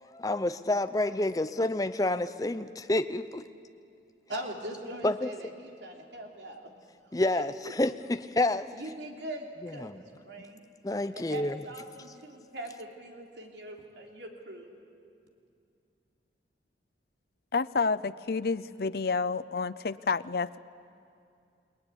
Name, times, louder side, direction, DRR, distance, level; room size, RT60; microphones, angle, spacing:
voice 1, 0.1-3.4 5.0-5.3 7.1-8.7 9.6-10.0 10.8-11.6, left 2 dB, 20° left, 11 dB, 0.6 m, -29 dB
voice 2, 4.3-6.6 7.3-7.4 8.7-10.6 11.1-14.7, right 1 dB, 75° right, 1 dB, 3.2 m, -41 dB
voice 3, 17.5-20.6, left 4 dB, 55° left, 14 dB, 0.6 m, -29 dB
29.5 x 19.5 x 9.9 m, 2.5 s
head